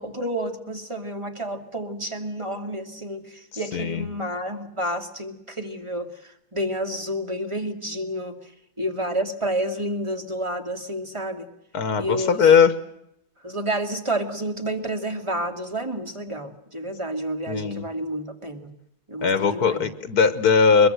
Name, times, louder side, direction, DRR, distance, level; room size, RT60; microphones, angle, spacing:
voice 1, 0.0-3.2 3.6-6.1 6.5-8.3 8.8-11.5 12.0-12.5 13.4-18.7 19.1-19.9, right 1 dB, 20° right, 4 dB, 2.4 m, -29 dB
voice 2, 3.7-4.1 11.7-12.7 17.5-17.9 19.2-20.9, left 6 dB, 80° left, 10 dB, 1.7 m, -19 dB
23.5 x 22.0 x 7.9 m, 0.79 s
omnidirectional pair, 1.6 m